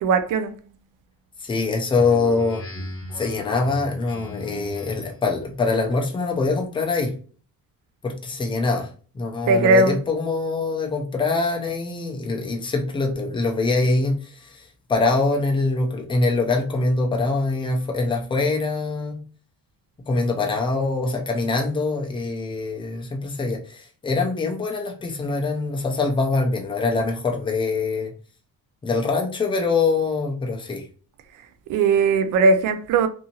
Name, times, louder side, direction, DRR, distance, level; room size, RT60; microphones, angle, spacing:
voice 1, 0.0-0.5 9.5-10.0 31.7-33.1, right 3 dB, 65° right, 0.5 m, -18 dB
voice 2, 1.4-2.6 3.1-7.1 8.0-8.9 9.1-19.2 20.1-28.1 28.8-30.9, left 3 dB, 15° left, 0.4 m, -24 dB
Speech synthesizer, 1.9-5.3, left 1 dB, 40° left, 1.0 m, -37 dB
2.7 x 2.6 x 2.8 m
cardioid pair, 160°, 35 cm